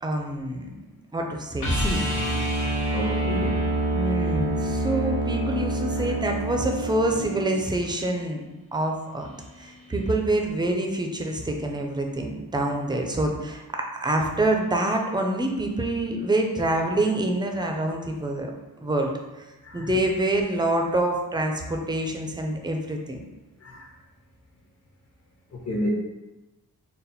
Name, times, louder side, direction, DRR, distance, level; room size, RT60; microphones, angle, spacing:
voice 1, 0.0-0.8 1.1-2.0 3.9-8.4 8.7-9.3 9.6-18.5 18.8-19.1 19.7-23.2, right 1 dB, 10° right, 2 dB, 0.4 m, -26 dB
sound 1, 1.6-7.6 10.1-10.2, right 1 dB, 85° left, 1.1 m, -26 dB
voice 2, 2.9-3.6 5.9-6.1 19.6-19.9 23.6-23.9 25.5-25.9, left 1 dB, 40° left, -2 dB, 0.9 m, -31 dB
4.1 x 2.1 x 4.1 m, 1.1 s
wide cardioid pair, 100°, 38 cm